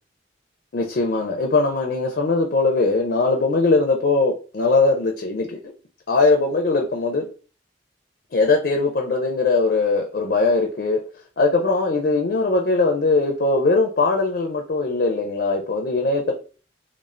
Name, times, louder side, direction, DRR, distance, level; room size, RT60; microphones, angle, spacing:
voice 1, 0.7-5.6 6.1-7.3 8.3-11.0 11.4-16.3, left 3 dB, 55° left, 2 dB, 0.4 m, -20 dB
2.4 x 2.0 x 3.1 m, 0.37 s
head